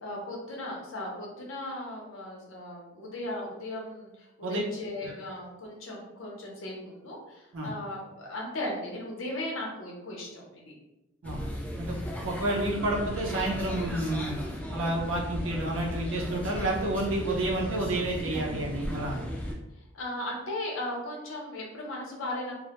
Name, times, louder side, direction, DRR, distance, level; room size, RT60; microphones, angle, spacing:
voice 1, 0.0-10.7 19.9-22.5, left 1 dB, 80° left, -2 dB, 0.7 m, -37 dB
sound 1, 11.2-19.5, equal, 5° left, 0.4 m, -36 dB
voice 2, 11.2-14.4 14.7-19.3, right 1 dB, 75° right, -1 dB, 0.5 m, -30 dB
2.1 x 2.1 x 2.8 m, 0.95 s
head